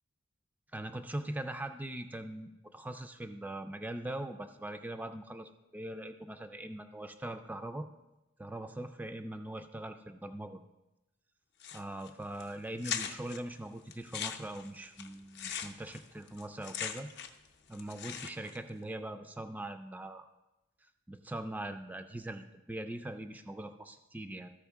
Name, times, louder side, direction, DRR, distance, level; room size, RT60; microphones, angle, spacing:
voice 1, 0.7-7.9 8.4-10.6 11.7-17.1 17.7-20.3 21.1-24.5, right 1 dB, 10° right, 8 dB, 0.3 m, -41 dB
sound 1, 11.6-12.1 12.4-12.5 12.8-13.4 13.9-17.5 17.7-18.6, left 8 dB, 60° left, 0.6 m, -40 dB
13.5 x 5.0 x 3.5 m, 0.95 s
head